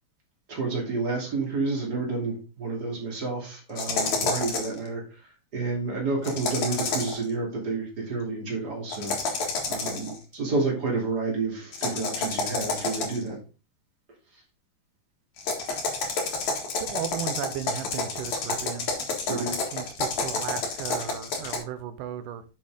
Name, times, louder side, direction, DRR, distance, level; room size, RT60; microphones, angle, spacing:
voice 1, 0.5-5.0 5.5-9.2 9.7-13.4 19.3-19.6, right 3 dB, 30° right, 2.9 m, -30 dB
sound 1, 3.8-4.8 6.2-7.2 8.9-10.2 11.7-13.3 15.4-21.6, left 3 dB, 55° left, 2.9 m, -29 dB
voice 2, 16.8-18.9 19.3-22.4, right 9 dB, 75° right, 2.2 m, -35 dB
8.4 x 6.6 x 3.6 m
omnidirectional pair, 4.1 m